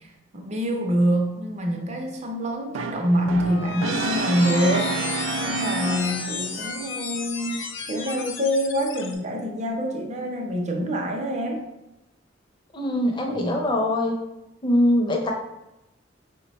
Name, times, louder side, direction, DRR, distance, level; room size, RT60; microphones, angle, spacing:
voice 1, 0.0-5.1 5.4-7.6 7.9-11.6 13.3-13.6, equal, 35° right, 2 dB, 0.6 m, -26 dB
Brass instrument, 2.7-6.6, right 4 dB, 85° right, 0.3 m, -29 dB
sound 1, 3.2-9.1, left 5 dB, 80° left, 0.6 m, -33 dB
voice 2, 12.7-14.1 14.6-15.3, left 1 dB, 25° left, 1 dB, 0.5 m, -22 dB
4.6 x 2.2 x 4.0 m, 0.91 s
head